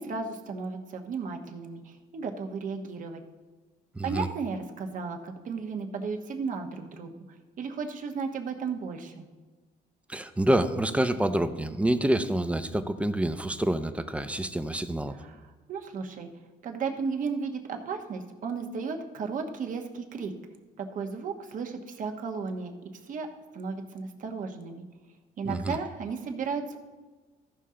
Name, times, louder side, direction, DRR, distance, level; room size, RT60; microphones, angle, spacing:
voice 1, 0.0-3.2 4.0-7.1 7.6-9.3 15.1-16.3 16.6-20.3 20.8-23.3 23.5-24.8 25.4-26.8, right 5 dB, 50° right, 4 dB, 1.1 m, -34 dB
voice 2, 3.9-4.3 10.1-15.2 25.4-25.8, right 1 dB, 5° right, 10 dB, 0.5 m, -27 dB
14.5 x 5.7 x 3.7 m, 1.3 s
cardioid pair, 110°, 17 cm